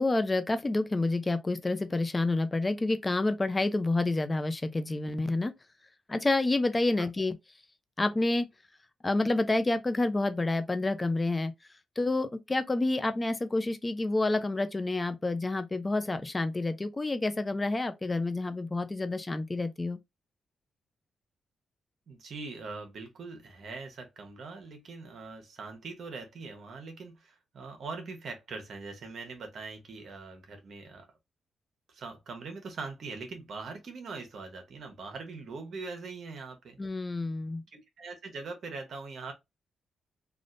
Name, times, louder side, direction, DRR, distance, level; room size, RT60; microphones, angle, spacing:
voice 1, 0.0-5.5 6.1-7.3 8.0-8.5 9.0-11.5 12.0-20.0 36.8-37.6, left 2 dB, 25° left, 0.6 m, -28 dB
voice 2, 22.1-31.1 31.9-36.8 37.7-39.3, right 4 dB, 65° right, 1.0 m, -42 dB
3.4 x 2.5 x 2.5 m
cardioid pair, 65°, 0 cm